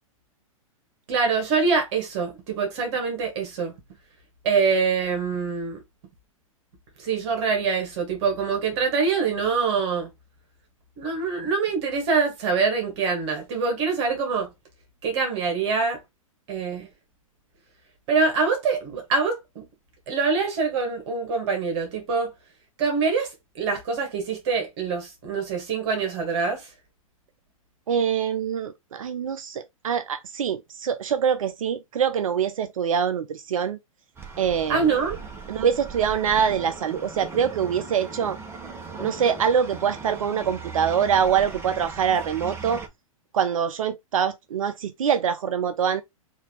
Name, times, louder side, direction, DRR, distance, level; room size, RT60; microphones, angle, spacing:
voice 1, 1.1-3.7 4.4-5.8 7.0-10.1 11.0-14.5 15.0-16.0 16.5-16.9 18.1-19.7 20.1-22.3 22.8-26.7 34.7-35.2, right 5 dB, 50° right, 1.6 m, -24 dB
voice 2, 27.9-33.8 34.4-34.9 35.5-38.4 39.0-42.8 43.3-46.0, right 7 dB, 70° right, 0.5 m, -24 dB
sound 1, 34.2-42.9, right 4 dB, 15° right, 1.1 m, -38 dB
4.0 x 2.7 x 3.7 m
hypercardioid pair, 110°, 18 cm